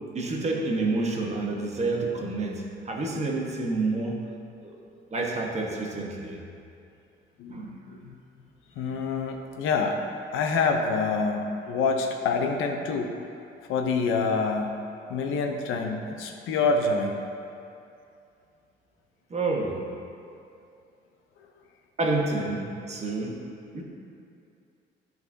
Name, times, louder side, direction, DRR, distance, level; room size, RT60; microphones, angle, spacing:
voice 1, 0.1-4.2 4.6-4.7 5.1-6.4 7.5-7.8 19.3-19.8 22.0-23.4 23.7-23.8, right 3 dB, 35° right, -1 dB, 1.2 m, -28 dB
voice 2, 7.4-8.1 8.8-10.0 10.3-13.1 13.7-14.8 15.1-17.1, left 4 dB, 85° left, 3 dB, 0.7 m, -26 dB
12.0 x 4.0 x 2.7 m, 2.5 s
cardioid pair, 90°, 20 cm